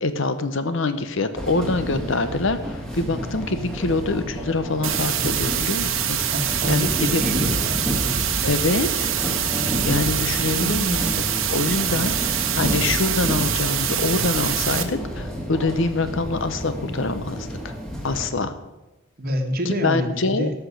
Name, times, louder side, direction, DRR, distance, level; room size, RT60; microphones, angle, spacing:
voice 1, 0.0-6.2 6.7-7.2 8.4-9.1 9.8-11.1 11.5-17.5 18.0-18.5 19.6-20.5, left 3 dB, 55° left, 11 dB, 0.8 m, -25 dB
sound 1, 1.3-18.3, equal, ahead, 1.9 m, -30 dB
sound 2, 4.8-14.8, right 10 dB, 65° right, 1.1 m, -25 dB
voice 2, 6.3-7.8 10.1-11.2 19.2-20.5, equal, 40° right, 5 dB, 1.4 m, -28 dB
13.5 x 6.0 x 8.3 m, 1.1 s
head